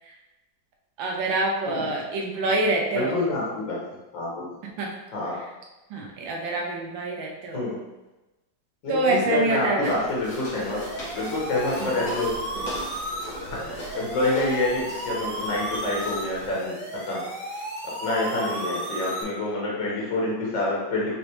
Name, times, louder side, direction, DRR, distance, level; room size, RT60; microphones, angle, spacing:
voice 1, 1.0-3.2 4.8-4.9 5.3-5.5 5.9-7.7 8.9-10.0 11.8-12.0 12.6-12.7, right 2 dB, 85° right, 0 dB, 1.4 m, -26 dB
voice 2, 2.9-3.8 4.1-4.5 5.1-5.3 7.5-7.8 8.8-10.8 11.1-12.3 13.4-17.2 17.5-17.6 18.0-21.1, left 2 dB, 80° left, -5 dB, 2.1 m, -27 dB
Walk footsteps, 9.8-16.5, equal, 50° left, 1.7 m, -39 dB
sound 1, 10.2-19.2, right 1 dB, 60° right, 0.6 m, -34 dB
5.0 x 3.3 x 3.1 m, 1.1 s
omnidirectional pair, 2.0 m